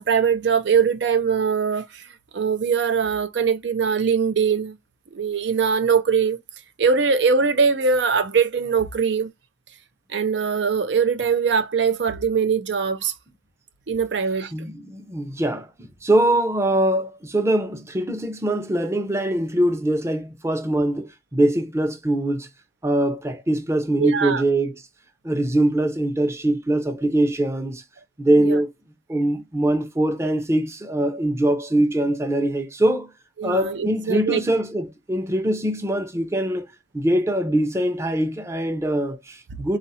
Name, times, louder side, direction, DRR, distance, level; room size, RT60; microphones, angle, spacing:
voice 1, 0.0-2.1 2.3-4.8 5.1-6.4 6.8-9.3 10.1-13.1 13.9-14.5 24.0-24.4 28.4-28.6 33.4-34.4, right 6 dB, 75° right, 0.5 m, -21 dB
voice 2, 14.5-22.5 22.8-24.8 25.2-27.8 28.2-28.7 29.1-33.1 33.4-36.7 36.9-39.8, right 1 dB, 15° right, 0.6 m, -22 dB
4.0 x 2.5 x 4.1 m
head